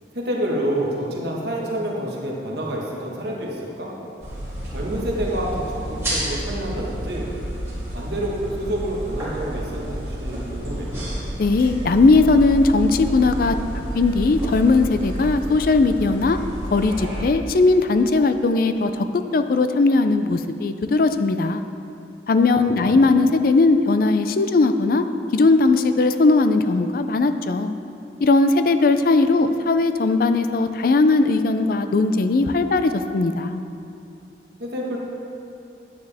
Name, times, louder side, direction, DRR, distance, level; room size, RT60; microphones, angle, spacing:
voice 1, 0.1-3.9 4.7-7.3 7.9-10.9 22.6-23.0 34.6-35.0, right 1 dB, 65° right, -3 dB, 1.4 m, -28 dB
sound 1, 4.2-17.2, right 1 dB, 15° right, 2.2 m, -30 dB
voice 2, 11.4-16.4 16.7-21.6 22.3-25.0 25.3-27.7 28.2-33.6, left 3 dB, 50° left, 9 dB, 0.4 m, -18 dB
9.2 x 9.1 x 3.4 m, 2.6 s
head